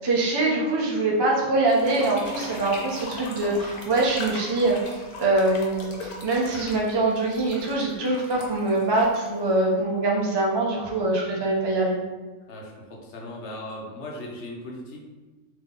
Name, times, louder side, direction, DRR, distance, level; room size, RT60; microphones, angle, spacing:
voice 1, 0.0-12.0, right 2 dB, 35° right, -3 dB, 0.4 m, -24 dB
sound 1, 1.6-9.6, left 2 dB, 90° left, 1.3 m, -39 dB
voice 2, 12.5-15.0, left 1 dB, 60° left, -1 dB, 1.0 m, -38 dB
3.5 x 2.9 x 3.7 m, 1.2 s
omnidirectional pair, 1.5 m